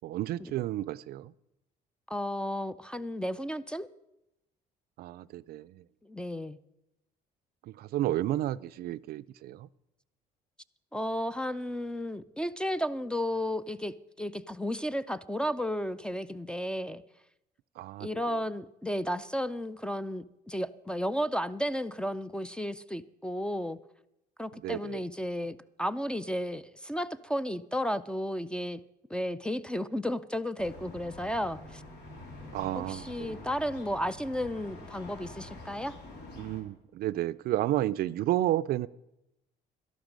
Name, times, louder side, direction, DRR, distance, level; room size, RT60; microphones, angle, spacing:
voice 1, 0.0-1.3 5.0-5.8 7.6-9.7 17.8-18.4 24.6-25.0 32.5-33.4 36.4-38.9, right 14 dB, 65° right, 16 dB, 0.4 m, -32 dB
voice 2, 2.1-3.9 6.0-6.6 10.9-17.0 18.0-23.8 24.4-28.8 29.1-31.8 32.8-35.9, equal, 5° left, 15 dB, 0.4 m, -33 dB
sound 1, 30.6-36.6, left 2 dB, 75° left, 2.7 m, -46 dB
12.0 x 12.0 x 5.2 m, 0.89 s
cardioid pair, 110°, 17 cm